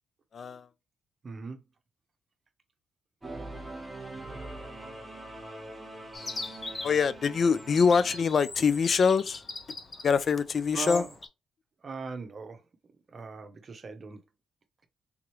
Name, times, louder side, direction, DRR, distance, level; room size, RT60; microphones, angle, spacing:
voice 1, 0.3-0.7 6.8-9.4 10.0-11.0, left 5 dB, 50° left, 0.3 m, -24 dB
voice 2, 1.2-1.6 10.7-11.1 11.8-12.6 13.1-14.2, right 4 dB, 40° right, 0.8 m, -39 dB
Singing / Musical instrument, 3.2-8.2, right 2 dB, 10° right, 1.3 m, -43 dB
Chirp tweet, 6.1-11.3, left 3 dB, 25° left, 0.7 m, -41 dB
3.5 x 2.9 x 3.1 m
cardioid pair, 90°, 0 cm